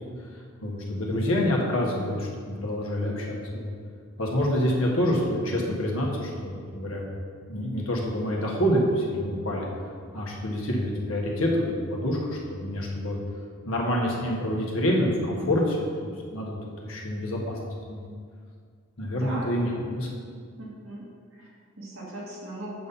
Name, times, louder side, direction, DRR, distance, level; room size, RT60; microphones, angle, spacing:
voice 1, 0.6-3.7 4.2-7.0 7.5-9.6 10.1-13.2 13.6-17.6 17.9-18.0 19.0-20.1, equal, 90° left, -2 dB, 1.5 m, -27 dB
voice 2, 19.1-19.8 20.6-22.9, right 1 dB, 80° right, -5 dB, 2.2 m, -39 dB
8.4 x 4.2 x 5.4 m, 2.1 s
head